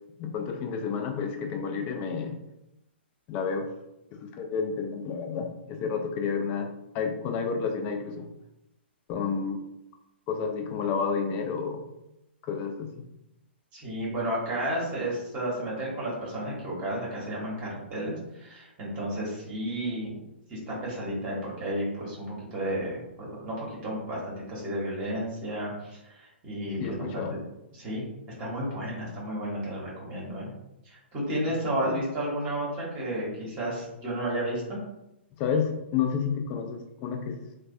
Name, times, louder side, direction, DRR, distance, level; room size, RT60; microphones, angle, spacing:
voice 1, 0.2-2.4 3.3-3.7 4.2-6.7 6.9-8.3 9.1-9.6 10.3-11.8 12.4-12.9 26.8-27.3 31.8-32.0 35.4-37.3, left 6 dB, 25° left, 4 dB, 0.4 m, -30 dB
voice 2, 13.7-20.2 20.5-27.4 27.7-28.1 28.4-30.5 30.8-34.8, right 1 dB, 25° right, -5 dB, 0.9 m, -32 dB
3.1 x 2.2 x 2.6 m, 0.88 s
figure-of-eight pair, 120°, 6 cm